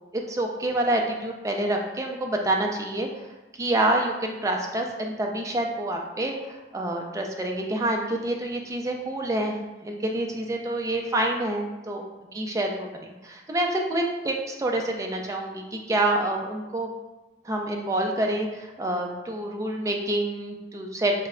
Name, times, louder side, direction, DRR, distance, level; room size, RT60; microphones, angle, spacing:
voice 1, 0.1-3.1 3.6-12.0 12.4-16.9 17.4-21.1, right 1 dB, 15° right, 1 dB, 0.3 m, -27 dB
3.3 x 2.0 x 3.6 m, 1.1 s
head